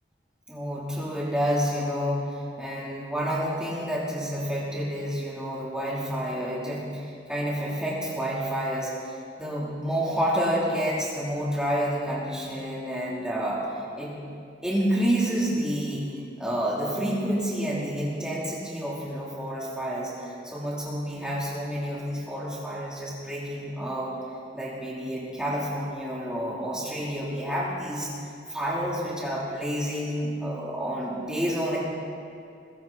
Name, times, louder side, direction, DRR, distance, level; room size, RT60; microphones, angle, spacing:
voice 1, 0.5-13.6 14.0-14.1 14.6-16.1 16.4-24.1 24.5-31.8, equal, 5° right, -6 dB, 3.2 m, -29 dB
21.0 x 16.5 x 4.1 m, 2.5 s
head